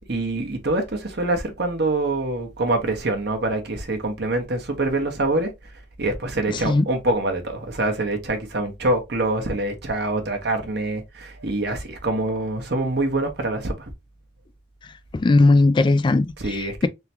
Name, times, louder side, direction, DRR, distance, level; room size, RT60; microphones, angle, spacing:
voice 1, 0.1-5.5 6.0-13.9 16.4-16.9, right 2 dB, 60° right, 1.2 m, -25 dB
voice 2, 6.5-6.9 15.1-16.9, left 2 dB, 25° left, 0.3 m, -18 dB
3.8 x 3.4 x 2.8 m
head